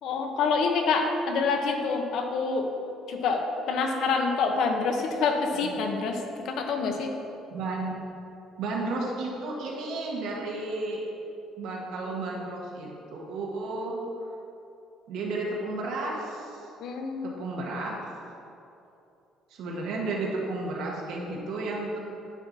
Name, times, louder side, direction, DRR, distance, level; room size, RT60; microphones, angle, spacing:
voice 1, 0.0-2.7 3.1-7.1 16.8-17.4, left 4 dB, 65° left, 4 dB, 0.8 m, -27 dB
voice 2, 7.5-7.9 8.6-11.0 11.6-14.0 15.1-16.7 17.2-18.0 19.5-22.0, right 2 dB, 75° right, -2 dB, 1.3 m, -33 dB
9.9 x 5.9 x 2.8 m, 2.8 s
cardioid pair, 150°, 0 cm